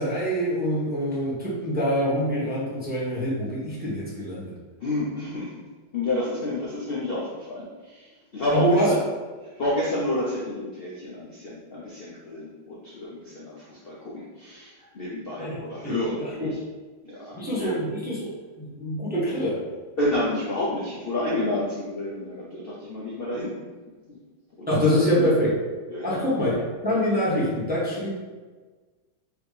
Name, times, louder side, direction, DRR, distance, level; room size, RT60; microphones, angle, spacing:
voice 1, 0.0-4.5 8.5-8.9 15.4-15.9 16.4-16.5 17.4-18.3 18.6-19.6 24.7-25.5 26.0-26.6 26.8-28.1, equal, 10° right, -8 dB, 0.6 m, -25 dB
voice 2, 4.8-5.5 5.9-9.0 9.4-16.6 17.0-17.8 20.0-23.5 24.1-24.2 24.6-25.0 25.9-26.2, left 1 dB, 75° left, -6 dB, 0.5 m, -30 dB
4.9 x 3.0 x 3.2 m, 1.4 s
omnidirectional pair, 2.0 m